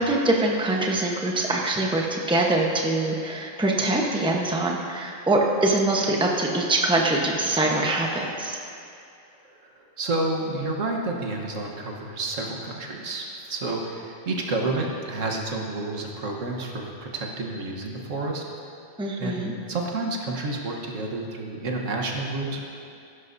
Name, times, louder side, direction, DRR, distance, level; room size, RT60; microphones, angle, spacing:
voice 1, 0.0-8.6 19.0-19.5, right 2 dB, 5° right, -1 dB, 0.9 m, -23 dB
voice 2, 9.4-18.4 19.2-19.4 19.7-22.6, right 2 dB, 85° right, 0 dB, 1.6 m, -30 dB
15.5 x 11.5 x 2.7 m, 2.5 s
omnidirectional pair, 1.3 m